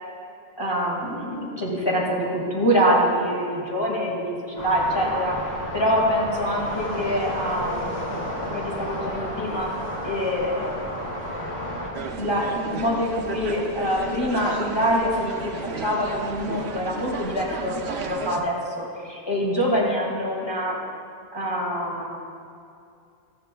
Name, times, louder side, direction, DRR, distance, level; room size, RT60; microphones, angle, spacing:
voice 1, 0.6-5.3 5.7-9.7 10.0-10.7 12.2-20.8 21.3-22.1, equal, 25° left, -5 dB, 2.0 m, -25 dB
sound 1, 4.6-11.9, equal, 70° left, 2.8 m, -31 dB
sound 2, 11.9-18.4, right 4 dB, 85° right, 1.0 m, -33 dB
15.5 x 13.5 x 2.3 m, 2.5 s
omnidirectional pair, 1.1 m